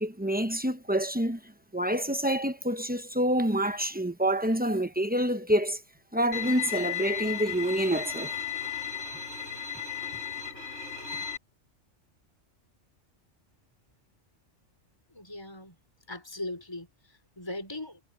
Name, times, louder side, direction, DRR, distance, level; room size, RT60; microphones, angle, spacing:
voice 1, 0.0-1.4 1.7-5.8 6.1-8.3, right 1 dB, 10° right, 0.7 m, -27 dB
Bowed string instrument, 6.3-11.4, left 8 dB, 70° left, 5.1 m, -35 dB
voice 2, 15.1-15.7 16.1-18.0, left 2 dB, 20° left, 4.7 m, -39 dB
omnidirectional pair, 1.2 m